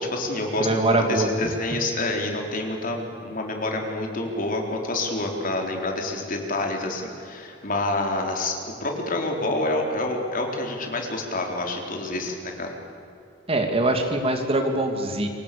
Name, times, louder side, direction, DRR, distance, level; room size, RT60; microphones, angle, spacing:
voice 1, 0.0-12.7, left 2 dB, 45° left, 2 dB, 4.1 m, -28 dB
voice 2, 0.6-1.5 13.5-15.3, right 2 dB, 30° right, 4 dB, 2.6 m, -23 dB
27.5 x 25.0 x 7.0 m, 2.6 s
head